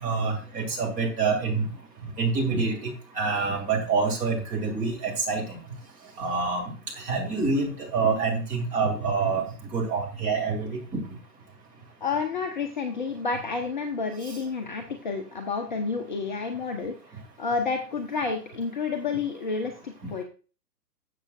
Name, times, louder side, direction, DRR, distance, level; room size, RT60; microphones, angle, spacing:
voice 1, 0.0-1.6 2.2-5.6 6.2-6.6 7.0-9.4 9.7-10.8, right 4 dB, 15° right, -1 dB, 2.3 m, -26 dB
voice 2, 12.0-20.2, left 4 dB, 30° left, 4 dB, 0.7 m, -30 dB
12.5 x 7.5 x 2.5 m, 0.36 s
figure-of-eight pair, 125°, 49 cm